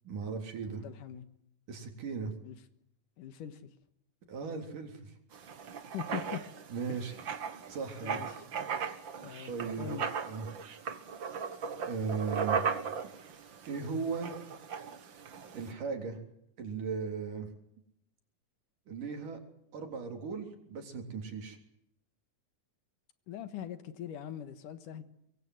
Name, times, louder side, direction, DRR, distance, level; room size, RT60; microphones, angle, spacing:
voice 1, 0.1-0.8 1.7-2.3 4.3-5.1 6.7-7.1 7.7-8.2 9.5-10.0 10.3-10.5 11.8-12.6 13.7-14.4 15.5-16.2 16.6-17.5 18.9-19.4 19.7-21.6, right 5 dB, 70° right, 5 dB, 5.0 m, -37 dB
voice 2, 0.7-1.3 2.4-2.6 3.2-3.7 5.9-6.4 6.9-7.0 8.0-8.4 9.2-10.0 23.3-25.0, left 10 dB, 75° left, 11 dB, 3.0 m, -42 dB
Writing, 5.3-15.7, right 6 dB, 45° right, 1.9 m, -37 dB
24.5 x 22.5 x 7.9 m, 0.76 s
omnidirectional pair, 3.8 m